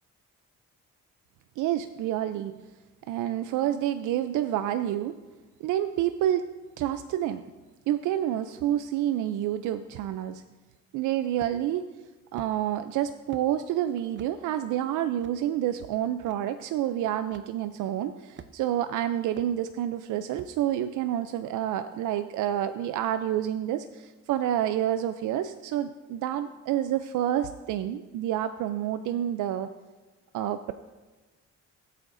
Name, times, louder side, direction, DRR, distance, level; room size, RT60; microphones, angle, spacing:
voice 1, 1.6-2.5 3.1-5.1 5.6-6.4 6.8-7.4 7.9-10.4 10.9-11.9 12.3-29.7 30.3-30.7, right 11 dB, 85° right, 10 dB, 0.5 m, -28 dB
sound 1, 11.4-11.8 12.4-12.5 13.3-13.5 14.1-14.3 15.2-15.4 16.3-16.4 17.3-17.5 18.4-18.8 19.4-19.5 20.3-20.6, right 8 dB, 40° right, 0.6 m, -46 dB
18.5 x 8.4 x 2.6 m, 1.2 s
cardioid pair, 90°, 30 cm